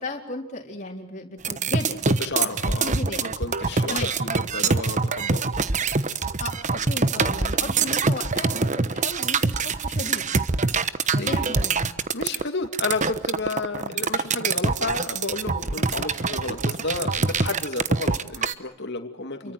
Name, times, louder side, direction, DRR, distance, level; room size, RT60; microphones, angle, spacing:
voice 1, 0.0-2.0 2.4-3.3 3.9-4.1 6.4-10.3 11.1-11.9 13.8-14.0 17.2-17.4 19.4-19.5, left 2 dB, 35° left, 0 dB, 4.2 m, -35 dB
sound 1, 1.4-18.5, right 4 dB, 35° right, 1.1 m, -24 dB
voice 2, 2.1-5.5 11.2-11.5 12.1-19.5, left 3 dB, 50° left, 7 dB, 2.6 m, -31 dB
29.5 x 23.5 x 7.9 m, 0.70 s
head